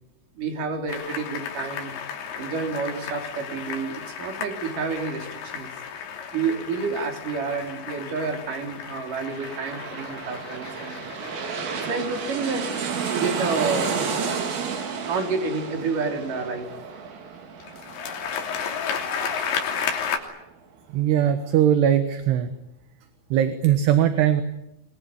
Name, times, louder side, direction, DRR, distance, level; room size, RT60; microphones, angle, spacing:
voice 1, 0.4-1.9 2.4-5.7 6.3-11.0 11.7-12.6 13.1-14.0 15.1-16.7, right 4 dB, 45° right, 4 dB, 4.6 m, -29 dB
sound 1, 0.9-14.9 17.6-20.2, left 7 dB, 80° left, 5.6 m, -34 dB
sound 2, 8.8-20.1 20.5-20.6, right 6 dB, 85° right, 6.2 m, -32 dB
voice 2, 20.9-22.5 23.3-24.4, right 10 dB, 65° right, 9 dB, 3.1 m, -20 dB
25.0 x 22.0 x 9.7 m, 0.88 s
omnidirectional pair, 5.7 m